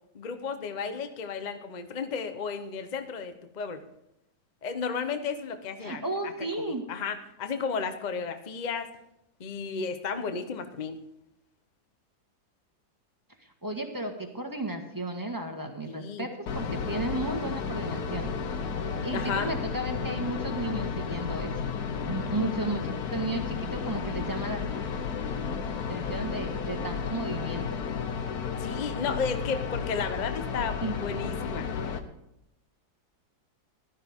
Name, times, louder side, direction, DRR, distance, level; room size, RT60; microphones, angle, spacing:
voice 1, 0.1-3.8 4.6-6.3 6.6-8.9 9.4-11.0 15.9-16.3 19.1-19.5 28.6-31.7, left 5 dB, 35° left, 8 dB, 0.7 m, -33 dB
voice 2, 5.8-6.9 13.6-18.3 19.0-21.5 22.0-22.8 23.1-24.6 25.9-27.8 30.8-30.9, right 2 dB, 10° right, 4 dB, 1.4 m, -33 dB
sound 1, 16.5-32.0, left 6 dB, 65° left, 1.4 m, -33 dB
15.5 x 12.5 x 3.6 m, 0.82 s
omnidirectional pair, 1.9 m